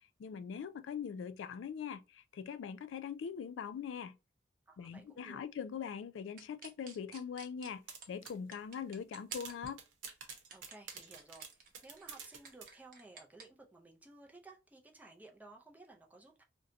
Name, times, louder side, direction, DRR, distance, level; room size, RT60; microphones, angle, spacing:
voice 1, 0.2-4.1 4.8-7.8 8.1-9.8, left 7 dB, 80° left, 0.3 m, -42 dB
voice 2, 4.7-5.4 10.5-16.4, right 2 dB, 10° right, 0.4 m, -56 dB
sound 1, 6.4-7.7 8.0-9.7 10.1-13.4, right 5 dB, 45° right, 0.8 m, -53 dB
sound 2, 7.9-8.4 8.8-8.9 9.3-12.7, right 6 dB, 85° right, 0.8 m, -47 dB
2.7 x 2.2 x 3.7 m
head